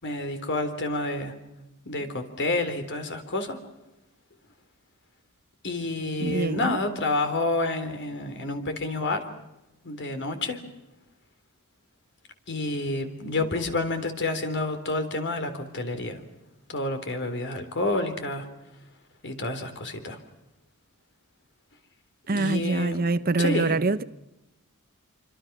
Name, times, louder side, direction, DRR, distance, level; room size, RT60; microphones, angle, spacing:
voice 1, 0.0-1.3 1.9-3.6 5.6-9.3 9.8-10.6 12.5-16.2 16.7-18.5 19.2-20.2 22.3-23.0 23.4-23.8, left 2 dB, 55° left, 3.6 m, -29 dB
voice 2, 6.2-6.8 22.3-24.0, right 3 dB, 45° right, 0.8 m, -25 dB
27.0 x 25.0 x 6.0 m
head